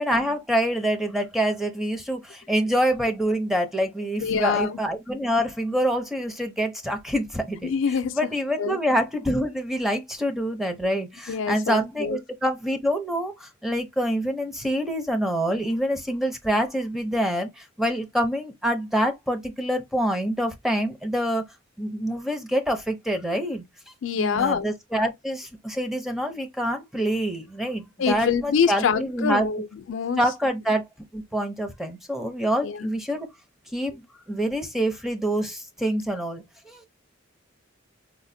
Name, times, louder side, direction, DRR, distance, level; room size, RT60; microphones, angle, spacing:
voice 1, 0.0-7.7 8.1-21.4 21.8-23.6 24.2-29.5 30.2-30.8 31.1-33.3 33.7-33.9 34.3-36.9, equal, ahead, 0.5 m, -26 dB
voice 2, 4.2-4.8 7.6-8.2 8.6-8.8 11.3-12.2 24.0-24.7 28.0-30.2 32.6-32.9, left 6 dB, 65° left, 0.4 m, -25 dB
4.1 x 2.1 x 2.6 m
head